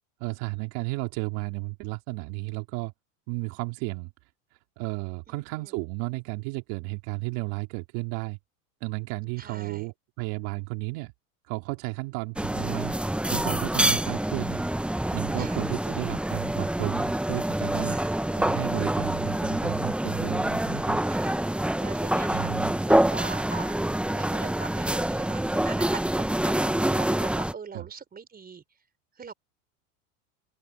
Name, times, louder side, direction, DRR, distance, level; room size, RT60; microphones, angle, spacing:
voice 1, 0.2-2.9 3.3-4.1 4.8-8.4 8.8-11.1 11.5-12.9 13.3-14.7 15.1-21.0 22.3-22.8 27.7-27.9, right 26 dB, 65° right, 3.1 m, -33 dB
voice 2, 5.3-5.7 9.4-9.9 15.4-15.6 17.9-18.2 21.1-28.6 29.2-29.3, right 6 dB, 25° right, 4.4 m, -42 dB
sound 1, 12.4-27.5, right 1 dB, 5° right, 1.0 m, -26 dB
open air
supercardioid pair, 105°, 40 cm